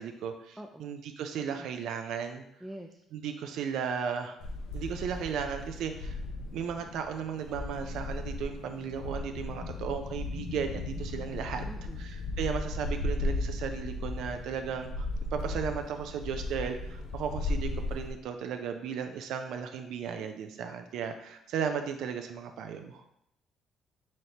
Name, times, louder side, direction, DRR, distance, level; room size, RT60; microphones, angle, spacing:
voice 1, 0.0-2.4 3.1-4.4 4.7-6.2 6.5-11.7 12.0-15.1 15.3-23.0, right 7 dB, 80° right, 6 dB, 0.4 m, -35 dB
voice 2, 0.6-0.9 1.5-1.7 2.6-3.0 11.7-12.0, right 1 dB, 5° right, 2 dB, 0.4 m, -45 dB
sound 1, 4.4-18.1, left 2 dB, 85° left, 0.5 m, -36 dB
4.1 x 3.2 x 2.8 m, 0.76 s
cardioid pair, 80°, 0 cm